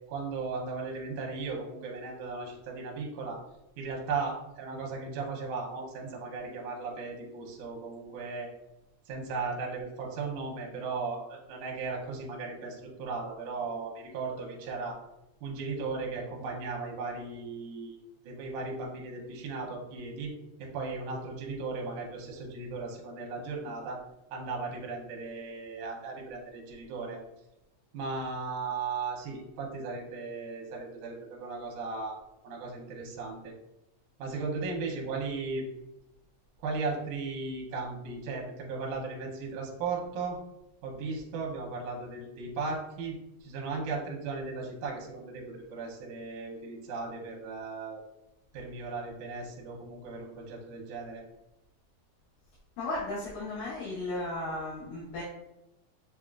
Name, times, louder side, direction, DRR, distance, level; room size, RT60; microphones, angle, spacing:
voice 1, 0.1-3.4 3.8-8.5 9.1-15.0 15.4-18.0 18.2-20.3 20.6-24.0 24.3-27.2 27.9-32.2 32.4-33.5 34.2-35.7 36.6-40.4 40.8-43.2 43.4-48.0 48.5-51.2, right 4 dB, 75° right, -2 dB, 2.1 m, -36 dB
voice 2, 52.8-55.2, left 2 dB, 90° left, -9 dB, 2.9 m, -35 dB
7.0 x 2.4 x 2.4 m, 0.89 s
omnidirectional pair, 3.8 m